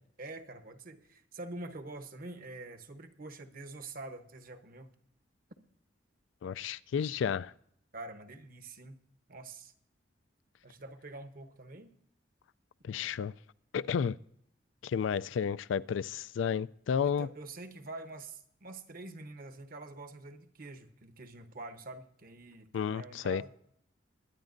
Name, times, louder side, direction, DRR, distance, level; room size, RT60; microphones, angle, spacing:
voice 1, 0.2-4.9 7.9-9.0 9.3-9.7 10.6-11.9 17.0-23.6, right 2 dB, 50° right, 1.0 m, -46 dB
voice 2, 6.4-7.5 12.8-13.3 13.7-14.2 14.8-17.3 22.7-23.4, left 7 dB, 85° left, 0.3 m, -32 dB
22.0 x 9.8 x 2.6 m
head